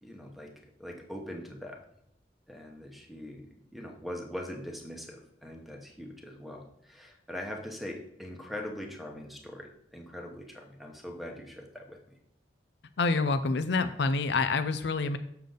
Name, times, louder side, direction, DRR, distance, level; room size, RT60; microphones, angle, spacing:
voice 1, 0.0-0.5 0.8-1.8 2.5-12.2, left 1 dB, ahead, 2 dB, 1.0 m, -42 dB
voice 2, 13.0-15.2, left 3 dB, 65° left, 10 dB, 0.5 m, -27 dB
6.9 x 6.6 x 3.9 m, 0.74 s
head